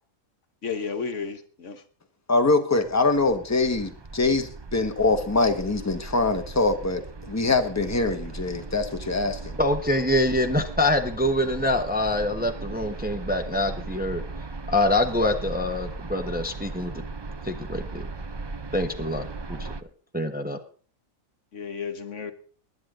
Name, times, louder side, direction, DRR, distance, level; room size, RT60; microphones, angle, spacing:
voice 1, 0.6-1.8 21.5-22.3, left 5 dB, 60° left, 1.5 m, -32 dB
voice 2, 2.3-9.6, left 3 dB, 10° left, 1.2 m, -24 dB
sound 1, 2.8-19.8, right 3 dB, 35° right, 0.4 m, -37 dB
voice 3, 9.6-14.2 14.7-17.0 17.4-18.1 18.7-19.7 20.1-20.6, left 1 dB, 5° right, 1.0 m, -25 dB
20.0 x 10.5 x 3.8 m
omnidirectional pair, 1.4 m